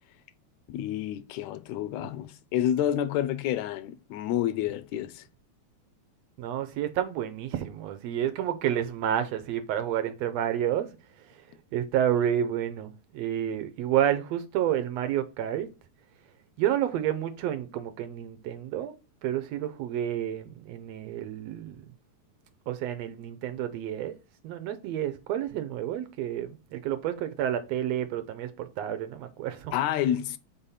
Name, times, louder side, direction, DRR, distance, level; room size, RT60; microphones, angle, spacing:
voice 1, 0.7-5.3 29.7-30.4, left 11 dB, 80° left, 1.8 m, -29 dB
voice 2, 6.4-10.9 11.3-11.4 11.7-15.7 16.6-18.9 19.2-21.9 22.7-24.2 24.4-29.7, right 10 dB, 75° right, 1.7 m, -30 dB
5.2 x 4.2 x 5.5 m
omnidirectional pair, 3.3 m